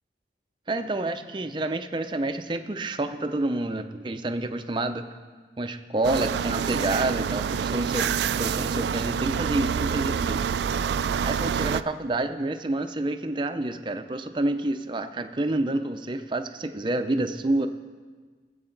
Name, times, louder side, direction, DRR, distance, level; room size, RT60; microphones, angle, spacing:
voice 1, 0.7-5.0 5.6-8.1 8.4-10.4 11.2-17.7, right 2 dB, 25° right, 7 dB, 0.5 m, -28 dB
sound 1, 6.0-11.8, right 7 dB, 75° right, 0.3 m, -27 dB
18.5 x 7.9 x 3.9 m, 1.5 s
head